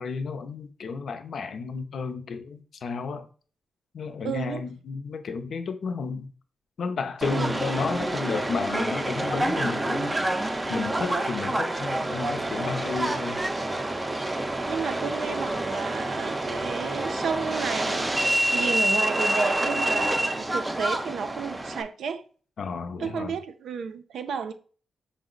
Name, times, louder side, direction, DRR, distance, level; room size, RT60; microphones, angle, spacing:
voice 1, 0.0-3.3 3.9-6.3 6.8-10.2 10.7-13.4 22.6-23.4, left 5 dB, 65° left, 0.5 m, -32 dB
voice 2, 4.2-4.6 7.3-7.6 14.7-22.2 23.0-24.5, right 6 dB, 80° right, 0.4 m, -32 dB
Subway metro underground, 7.2-21.8, right 1 dB, 20° right, 0.4 m, -27 dB
5.1 x 2.0 x 3.8 m
cardioid pair, 85°, 0 cm